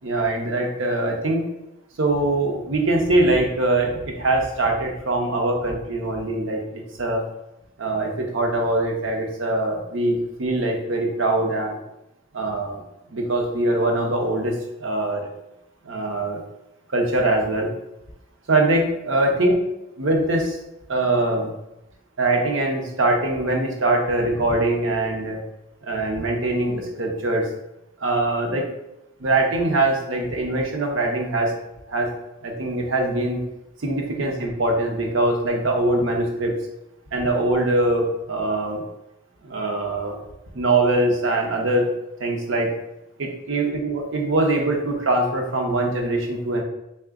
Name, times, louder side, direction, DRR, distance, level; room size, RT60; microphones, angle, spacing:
voice 1, 0.0-1.4 2.0-7.2 7.8-11.8 12.3-12.8 13.1-15.3 15.8-16.4 16.9-17.7 18.5-19.6 20.0-20.6 20.9-21.5 22.2-25.4 25.8-27.4 28.0-28.6 29.2-31.5 31.9-32.1 32.4-33.4 33.8-36.6 37.1-38.8 39.4-40.2 40.5-41.9 42.2-42.7 43.2-46.6, right 2 dB, 75° right, 1 dB, 0.8 m, -22 dB
3.7 x 2.3 x 3.5 m, 0.89 s
head